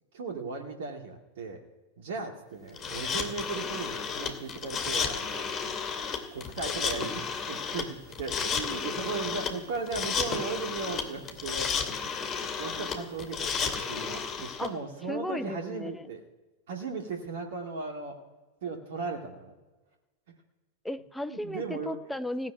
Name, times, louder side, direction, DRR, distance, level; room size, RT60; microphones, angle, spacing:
voice 1, 0.1-1.6 2.0-5.5 6.3-12.0 12.6-16.2 16.7-18.2 18.6-19.6 21.3-22.0, right 4 dB, 55° right, 2 dB, 2.2 m, -37 dB
sound 1, 2.8-14.7, left 6 dB, 25° left, 2.6 m, -32 dB
voice 2, 15.1-16.1 20.8-22.5, left 1 dB, 5° left, 10 dB, 0.8 m, -35 dB
16.5 x 7.3 x 9.3 m, 1.2 s
figure-of-eight pair, 90°, 0 cm